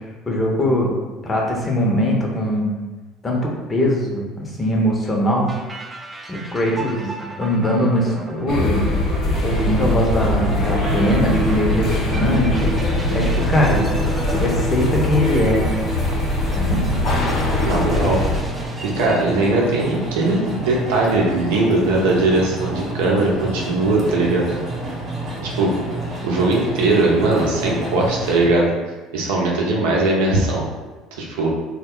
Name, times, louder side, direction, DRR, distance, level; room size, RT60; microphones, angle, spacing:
voice 1, 0.3-0.9 1.2-2.7 3.2-5.5 6.3-7.1 7.4-8.9 9.4-12.7 13.1-13.8 14.3-15.6 16.6-16.9, equal, 25° left, -1 dB, 0.7 m, -21 dB
sound 1, 5.5-19.2, right 2 dB, 20° right, 0.4 m, -36 dB
sound 2, 8.5-18.4, left 1 dB, 60° left, 0.7 m, -22 dB
sound 3, 9.4-28.4, right 2 dB, 40° right, 1.0 m, -30 dB
voice 2, 17.6-18.2 18.8-24.5 25.4-25.7 26.2-28.7 29.1-30.6 31.2-31.5, right 2 dB, 80° right, -2 dB, 0.6 m, -19 dB
2.2 x 2.0 x 3.6 m, 1.3 s
hypercardioid pair, 70°, 0 cm